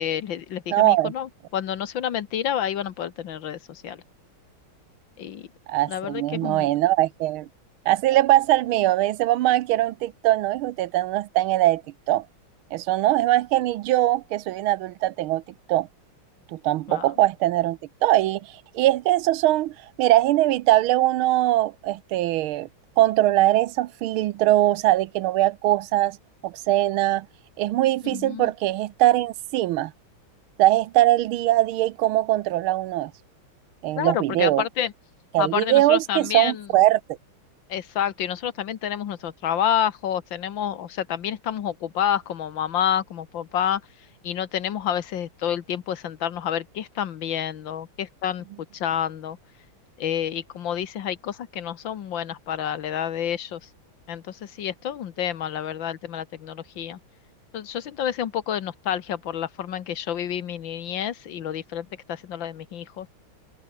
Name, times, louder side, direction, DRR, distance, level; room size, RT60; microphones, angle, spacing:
voice 1, 0.0-4.0 5.2-5.5 5.9-6.7 16.9-17.1 28.1-28.5 34.0-34.9 35.4-36.7 37.7-43.8 44.2-48.5 48.7-49.4 50.0-53.6 54.1-57.0 57.5-63.1, left 9 dB, 65° left, 1.8 m, -29 dB
voice 2, 0.7-1.1 5.7-7.5 7.9-11.8 12.1-12.2 12.7-15.4 15.7-15.9 16.5-22.7 23.0-26.2 26.4-27.3 27.6-29.9 30.6-33.1 33.8-34.6 35.3-37.0, right 15 dB, 80° right, 1.5 m, -21 dB
open air
omnidirectional pair, 2.3 m